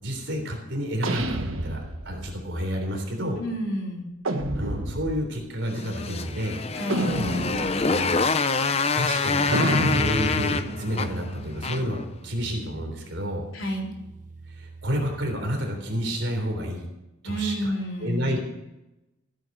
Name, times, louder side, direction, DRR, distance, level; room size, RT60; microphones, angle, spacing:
voice 1, 0.0-3.4 4.5-6.6 7.8-8.2 8.9-12.0 12.2-13.5 14.5-16.9 17.2-17.7 18.0-18.4, equal, 65° right, 2 dB, 3.5 m, -30 dB
sound 1, 1.0-2.3 4.2-5.3 6.9-8.0 9.5-12.2, right 1 dB, 85° right, 1.4 m, -29 dB
voice 2, 3.4-4.1 6.7-7.2 13.5-13.9 17.2-18.4, equal, 80° left, -1 dB, 3.9 m, -30 dB
Motorcycle, 5.7-12.0, left 4 dB, 30° left, 0.6 m, -26 dB
sound 2, 9.8-15.6, right 3 dB, 40° right, 0.5 m, -44 dB
15.0 x 9.1 x 6.6 m, 0.93 s
head